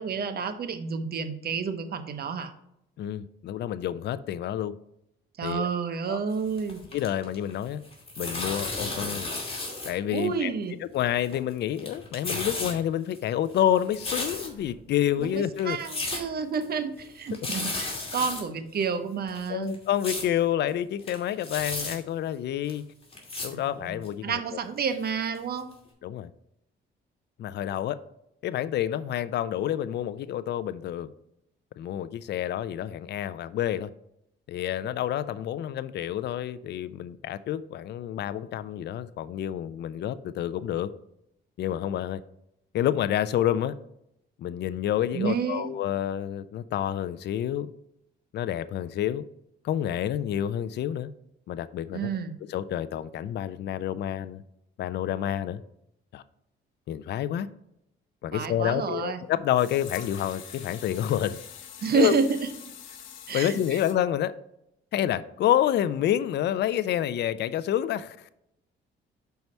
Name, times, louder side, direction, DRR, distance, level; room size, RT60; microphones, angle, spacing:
voice 1, 0.0-2.5 5.4-6.8 10.1-10.7 15.2-19.7 23.5-25.7 45.1-45.7 51.9-52.3 58.3-59.2 61.8-62.4 63.3-63.8, right 6 dB, 50° right, 0.8 m, -30 dB
voice 2, 3.0-4.7 5.4-5.7 6.1-6.2 6.9-7.8 8.2-9.3 9.8-10.5 10.9-15.8 19.5-22.9 23.4-24.6 26.0-26.3 27.4-28.0 28.4-31.1 31.8-33.9 34.5-40.9 41.6-42.2 42.7-43.7 44.4-47.7 48.3-49.2 49.6-51.1 51.5-52.1 52.5-54.4 54.8-55.6 56.1-56.2 56.9-57.5 58.2-61.4 61.9-62.1 63.3-64.3 64.9-68.3, left 11 dB, 60° left, 0.4 m, -28 dB
sound 1, 6.4-7.5 7.8-9.9 10.2-10.3 11.0-11.5 11.8-12.7 13.1-14.7 15.2-15.3 15.6-16.2 16.5-16.6 17.0-17.1 17.3-18.4 18.8-18.9 19.3-20.2 20.7-20.8 21.0-21.9 22.7-22.8 23.1-23.5 24.0-24.1 24.8-24.9 25.3-25.4 25.7-25.8, left 2 dB, 30° left, 2.4 m, -33 dB
water into pot, 59.5-63.9, left 8 dB, 85° left, 0.9 m, -44 dB
5.4 x 4.6 x 5.3 m
cardioid pair, 90°, 20 cm